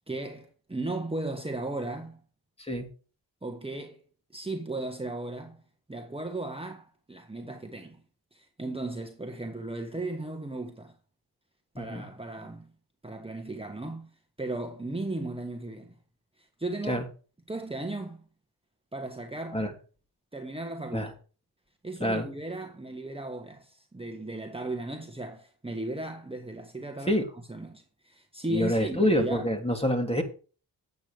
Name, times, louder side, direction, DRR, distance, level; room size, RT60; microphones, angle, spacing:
voice 1, 0.1-2.2 3.4-4.0 4.3-5.6 5.9-8.0 8.3-10.9 11.7-12.7 13.0-14.1 14.4-15.9 16.4-17.0 17.5-18.2 18.9-19.6 20.3-21.1 21.8-27.2 27.5-29.5, right 2 dB, 15° right, 1.5 m, -36 dB
voice 2, 11.7-12.1 16.9-17.1 19.5-19.7 20.9-21.1 22.0-22.3 27.1-27.2 28.5-30.2, equal, 15° left, 3.0 m, -26 dB
9.7 x 8.3 x 5.1 m
cardioid pair, 65°, 39 cm